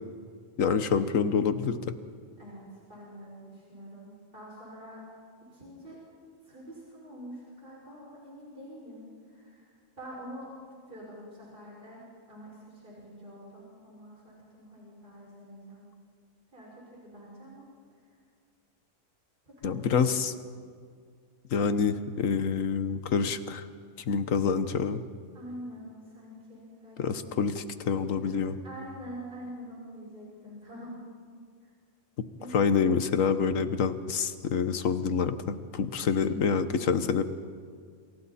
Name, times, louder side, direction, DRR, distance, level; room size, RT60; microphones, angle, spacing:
voice 1, 0.6-1.8 19.6-20.3 21.5-23.7 24.1-25.0 27.0-28.5 32.5-37.2, left 6 dB, 80° left, 11 dB, 1.4 m, -27 dB
voice 2, 2.4-5.0 5.5-6.0 6.4-10.5 10.9-15.9 16.5-17.7 18.1-18.2 19.5-20.2 25.3-27.4 28.1-31.0 31.6-31.7 32.4-32.5, equal, 40° right, -5 dB, 6.0 m, -46 dB
28.5 x 27.0 x 4.3 m, 2.1 s
omnidirectional pair, 1.4 m